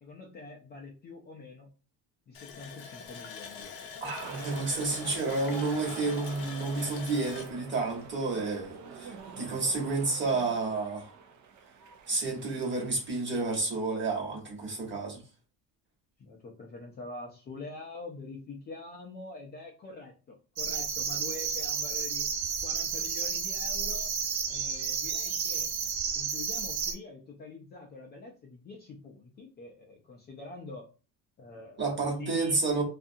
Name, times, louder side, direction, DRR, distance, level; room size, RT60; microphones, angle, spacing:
voice 1, 0.0-1.7 2.3-3.9 16.2-22.3 22.6-24.2 24.5-25.7 26.1-30.9 31.4-31.9 32.1-32.8, left 3 dB, 25° left, 0.4 m, -45 dB
Water tap faucet, 2.3-8.8 9.2-9.3 9.7-9.9, left 6 dB, 75° left, 0.6 m, -45 dB
voice 2, 4.0-11.1 12.1-15.2 31.8-32.8, right 3 dB, 30° right, 1.1 m, -30 dB
sound 1, 4.2-13.8, right 6 dB, 50° right, 0.5 m, -46 dB
sound 2, 20.6-26.9, right 6 dB, 70° right, 0.9 m, -32 dB
2.6 x 2.4 x 2.6 m
cardioid pair, 145°, 38 cm